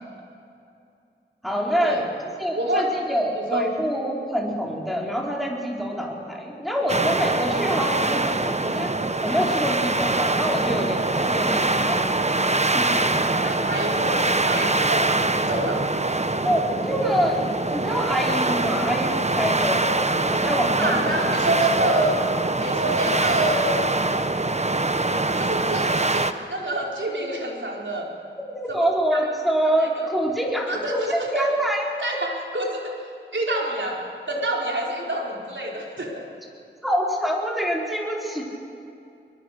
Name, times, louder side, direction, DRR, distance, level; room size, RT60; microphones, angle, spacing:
voice 1, 1.4-2.0 2.4-9.0 9.2-12.1 12.7-13.4 16.4-17.4 17.7-19.9 20.3-21.4 28.5-31.8 36.8-38.4, equal, ahead, -2 dB, 4.6 m, -26 dB
voice 2, 2.5-2.9 3.3-3.7 13.4-15.9 20.8-22.2 22.6-23.9 25.0-28.1 28.7-28.8 29.1-29.2 29.8-30.1 30.7-31.5 32.0-36.2, right 1 dB, 70° right, -2 dB, 4.3 m, -27 dB
sound 1, 6.9-26.3, right 2 dB, 35° right, 1.0 m, -23 dB
22.5 x 22.5 x 6.7 m, 2.5 s
wide cardioid pair, 50°, 20 cm